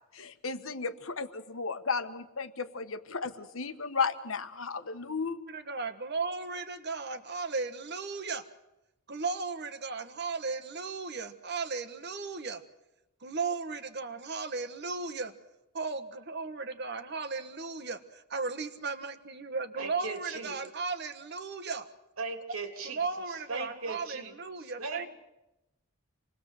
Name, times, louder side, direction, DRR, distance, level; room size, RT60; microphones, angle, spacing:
voice 1, 0.1-5.4, left 5 dB, 70° left, 10 dB, 1.3 m, -34 dB
voice 2, 5.5-8.4 9.1-12.6 13.2-15.3 15.7-21.9 22.8-25.1, right 4 dB, 55° right, 8 dB, 1.5 m, -36 dB
voice 3, 19.8-20.6 22.2-24.3 24.6-25.1, right 3 dB, 85° right, 5 dB, 3.1 m, -38 dB
27.0 x 20.0 x 7.7 m, 0.95 s
head